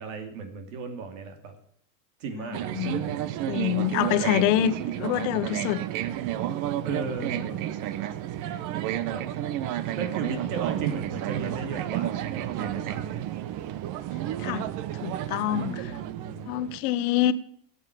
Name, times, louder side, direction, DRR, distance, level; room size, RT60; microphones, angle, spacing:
voice 1, 0.0-1.6 2.2-3.2 4.0-4.6 6.8-7.6 9.1-9.2 9.9-13.1 15.5-16.5, right 4 dB, 80° right, 2.8 m, -36 dB
sound 1, 2.5-16.8, right 12 dB, 50° right, 1.0 m, -31 dB
voice 2, 3.5-5.8 14.4-14.6 15.0-15.8 16.5-17.3, left 13 dB, 70° left, 1.1 m, -26 dB
12.5 x 8.3 x 8.4 m
cardioid pair, 145°, 39 cm